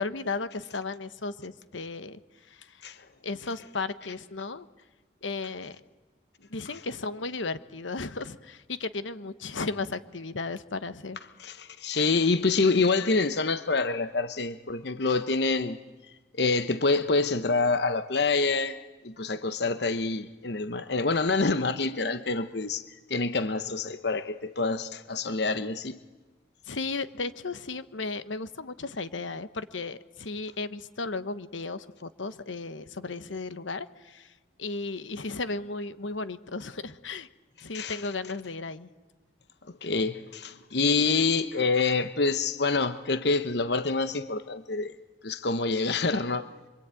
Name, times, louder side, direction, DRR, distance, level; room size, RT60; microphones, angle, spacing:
voice 1, 0.0-2.2 2.5-2.8 3.2-4.7 5.2-5.8 6.4-11.2 26.7-34.3 34.6-37.3 37.6-38.9, left 3 dB, 90° left, 1.1 m, -35 dB
voice 2, 11.4-15.8 16.4-18.8 19.0-22.8 23.1-26.0 37.7-38.0 39.8-44.9 45.2-46.5, left 3 dB, 60° left, 1.0 m, -26 dB
25.5 x 25.0 x 9.1 m
head